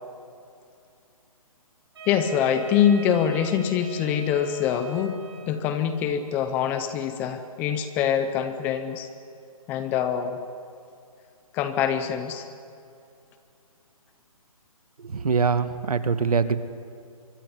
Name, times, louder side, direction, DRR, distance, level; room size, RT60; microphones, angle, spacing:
Wind instrument woodwind instrument, 1.9-5.8, right 3 dB, 45° right, 8.0 m, -41 dB
voice 1, 2.1-5.2 5.5-9.1 9.7-10.4 11.5-12.5, left 8 dB, 10° left, 10 dB, 0.6 m, -24 dB
voice 2, 15.1-16.6, right 5 dB, 80° right, 11 dB, 2.0 m, -23 dB
24.5 x 24.0 x 9.8 m, 2.5 s
hypercardioid pair, 165°, 19 cm